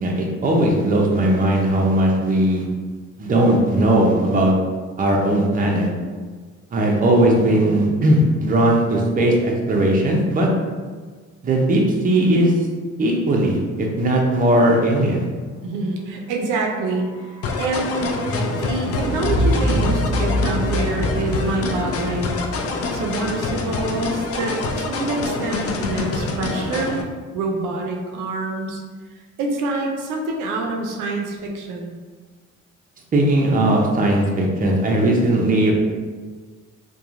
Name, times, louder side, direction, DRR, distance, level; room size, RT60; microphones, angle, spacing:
voice 1, 0.0-2.6 3.2-4.5 5.0-5.9 6.7-10.5 11.4-12.5 13.0-15.3 33.1-35.7, right 1 dB, 30° right, -1 dB, 0.5 m, -18 dB
voice 2, 15.6-17.1 17.6-22.4 22.9-26.9 27.3-28.8 29.4-31.9, right 2 dB, 85° right, 1 dB, 0.5 m, -26 dB
sound 1, 16.8-24.7 25.0-25.1, equal, 80° left, 0.8 m, -26 dB
sound 2, 17.4-27.0, left 3 dB, 50° left, 0.4 m, -26 dB
2.8 x 2.2 x 2.4 m, 1.4 s
cardioid pair, 90°, 30 cm